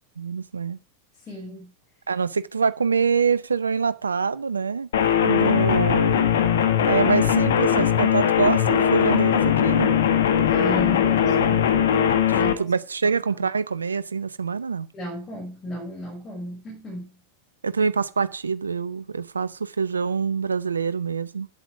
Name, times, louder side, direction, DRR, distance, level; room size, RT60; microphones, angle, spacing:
voice 1, 0.2-0.8 2.1-4.9 5.2-6.2 6.8-9.9 12.3-14.9 17.6-21.5, right 5 dB, 75° right, 0.6 m, -25 dB
voice 2, 1.3-1.7 10.1-10.2 10.5-11.7 12.3-12.7 14.9-17.2, equal, 20° left, 6.1 m, -35 dB
sound 1, 4.9-12.5, left 9 dB, 60° left, 1.4 m, -20 dB
8.9 x 8.2 x 6.5 m
figure-of-eight pair, 90°, 0 cm